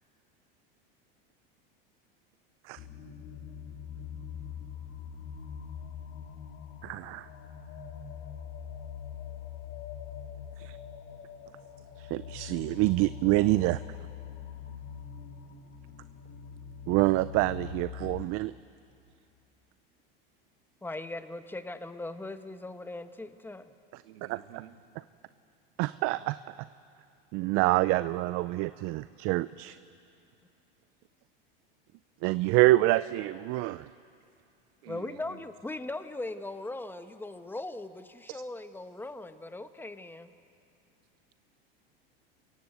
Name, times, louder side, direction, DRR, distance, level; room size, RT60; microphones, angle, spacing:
sound 1, 2.8-18.3, left 8 dB, 50° left, 2.8 m, -43 dB
voice 1, 6.8-7.3 10.6-10.8 12.0-14.0 16.9-18.5 23.9-24.0 24.3-24.4 25.8-26.4 27.3-29.8 32.2-33.9 38.3-38.4, right 19 dB, 50° right, 16 dB, 0.5 m, -27 dB
voice 2, 20.8-23.7 34.9-40.3, left 2 dB, 5° left, 10 dB, 1.1 m, -39 dB
voice 3, 24.0-24.8 34.8-35.4, right 11 dB, 80° right, 9 dB, 1.6 m, -50 dB
29.0 x 16.0 x 8.1 m, 2.5 s
supercardioid pair, 105°, 29 cm